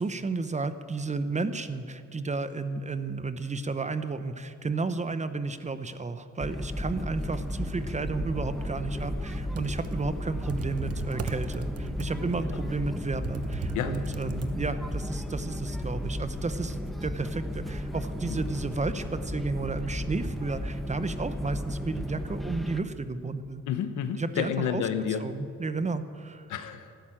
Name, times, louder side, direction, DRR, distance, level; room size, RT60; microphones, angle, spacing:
voice 1, 0.0-23.6 24.2-24.8 25.2-26.5, right 3 dB, 25° right, 11 dB, 0.9 m, -32 dB
sound 1, 6.4-22.8, equal, ahead, 0.9 m, -34 dB
Computer keyboard, 9.3-14.9, right 5 dB, 55° right, 1.1 m, -39 dB
sound 2, 10.9-11.0 11.8-11.9 12.7-12.8 13.6-13.8 14.5-14.7 15.4-15.6, left 1 dB, 25° left, 4.0 m, -48 dB
voice 2, 23.7-25.2 26.5-26.9, left 9 dB, 80° left, 9 dB, 1.2 m, -30 dB
12.5 x 12.0 x 8.9 m, 2.4 s
cardioid pair, 90°, 30 cm